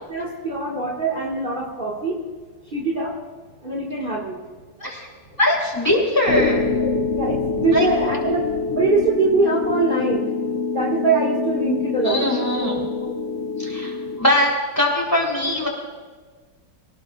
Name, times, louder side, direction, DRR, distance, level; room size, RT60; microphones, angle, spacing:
voice 1, 0.1-2.2 2.7-3.1 3.6-4.4 6.2-6.4 6.7-8.5 8.7-10.3 10.7-12.3 12.6-13.2 15.5-15.6, right 3 dB, 30° right, -2 dB, 1.9 m, -23 dB
voice 2, 5.4-6.6 7.7-7.9 12.0-12.8 13.6-15.7, left 1 dB, 10° left, -2 dB, 3.3 m, -21 dB
sound 1, 6.3-14.2, left 5 dB, 80° left, 0.6 m, -25 dB
25.5 x 17.5 x 2.4 m, 1.5 s
omnidirectional pair, 1.8 m